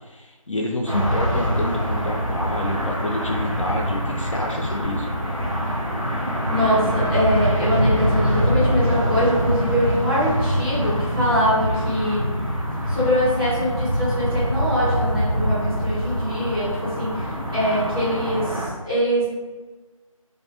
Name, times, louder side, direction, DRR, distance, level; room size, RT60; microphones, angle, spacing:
voice 1, 0.0-5.1, left 1 dB, 65° left, -1 dB, 0.4 m, -28 dB
sound 1, 0.9-18.7, equal, 70° right, 0.7 m, -24 dB
voice 2, 6.5-12.4 12.9-19.3, equal, 40° right, -10 dB, 1.2 m, -23 dB
2.5 x 2.0 x 2.7 m, 1.3 s
figure-of-eight pair, 170°, 18 cm